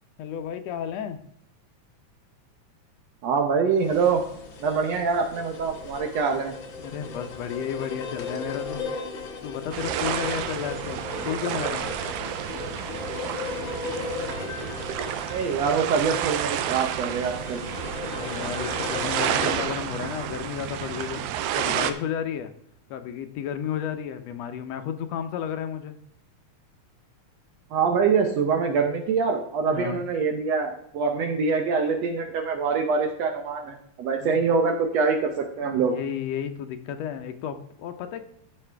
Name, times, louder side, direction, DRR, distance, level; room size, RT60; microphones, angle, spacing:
voice 1, 0.2-1.2 6.8-8.9 9.4-11.8 18.0-21.2 21.5-22.5 22.9-26.0 29.7-30.0 34.2-34.4 35.8-38.2, left 9 dB, 75° left, 8 dB, 1.7 m, -32 dB
voice 2, 3.2-4.2 4.6-6.6 15.3-17.6 27.7-35.9, right 5 dB, 70° right, 4 dB, 1.8 m, -24 dB
sound 1, 3.8-19.6, left 3 dB, 50° left, 1.6 m, -36 dB
sound 2, 9.7-21.9, right 10 dB, 85° right, 2.1 m, -30 dB
14.0 x 6.1 x 3.3 m, 0.73 s
omnidirectional pair, 3.5 m